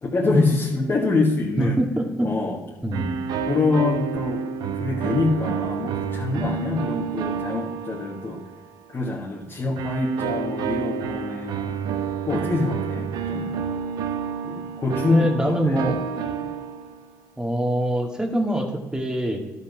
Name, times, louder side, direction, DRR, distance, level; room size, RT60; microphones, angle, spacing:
voice 1, 0.0-1.8 2.2-2.6 3.5-4.4 4.7-8.4 8.9-11.8 12.3-13.6 14.4-15.9 16.4-16.5, left 3 dB, 35° left, -2 dB, 1.7 m, -25 dB
voice 2, 1.6-2.3 2.8-3.1 15.1-16.0 17.4-19.4, right 1 dB, 10° right, 3 dB, 1.9 m, -24 dB
sound 1, 2.9-8.7 9.8-17.2, right 7 dB, 70° right, 0.9 m, -29 dB
11.5 x 5.6 x 6.2 m, 1.2 s
supercardioid pair, 75°, 7 cm